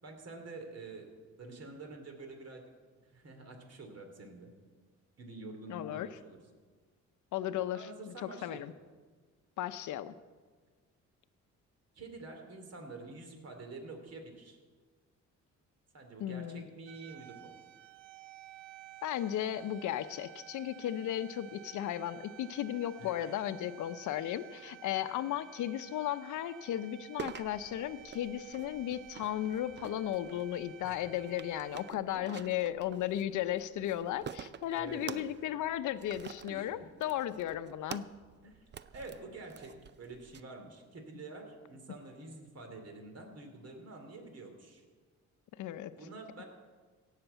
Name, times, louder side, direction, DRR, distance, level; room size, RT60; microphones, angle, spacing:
voice 1, 0.0-1.1 1.4-2.6 3.0-4.5 5.2-6.4 7.7-8.7 11.9-14.6 15.9-17.5 23.0-23.4 23.6-23.7 25.0-25.2 30.8-31.1 32.1-32.5 34.7-35.3 36.5-36.9 38.4-38.7 38.9-44.8 46.0-46.4, right 3 dB, 55° right, 4 dB, 2.9 m, -48 dB
voice 2, 5.7-6.1 7.3-7.9 8.2-8.7 9.6-10.1 16.2-16.7 19.0-38.1 45.6-45.9, left 12 dB, 80° left, 11 dB, 0.7 m, -35 dB
sound 1, 16.9-31.9, right 13 dB, 80° right, 0.6 m, -53 dB
sound 2, 27.2-40.4, right 7 dB, 35° right, 0.5 m, -49 dB
17.0 x 6.7 x 8.2 m, 1.5 s
cardioid pair, 90°, 30 cm